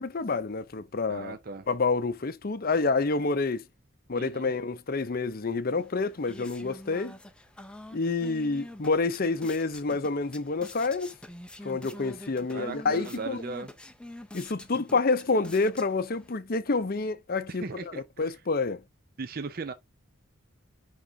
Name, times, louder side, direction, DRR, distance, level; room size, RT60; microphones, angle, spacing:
voice 1, 0.0-1.4 1.7-3.6 4.1-7.1 7.9-11.1 11.6-13.4 14.3-17.6 17.9-18.8, left 3 dB, 45° left, 0.6 m, -28 dB
voice 2, 1.1-1.7 4.1-4.5 12.5-13.7 15.3-15.4 17.5-18.4 19.2-19.7, right 4 dB, 45° right, 0.5 m, -38 dB
sound 1, 5.8-16.3, left 1 dB, 5° left, 0.6 m, -46 dB
10.5 x 3.7 x 2.7 m
head